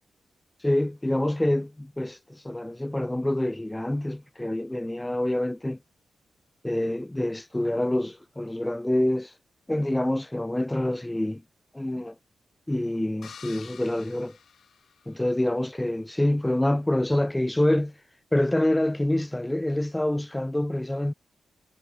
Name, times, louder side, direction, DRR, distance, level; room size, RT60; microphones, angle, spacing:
voice 1, 0.6-5.8 6.6-9.3 9.7-11.4 11.7-12.1 12.7-14.4 15.1-17.9 18.3-21.1, left 1 dB, 10° left, 0.4 m, -26 dB
sound 1, 13.2-15.4, left 7 dB, 60° left, 5.6 m, -48 dB
wide cardioid pair, 130°, 0 cm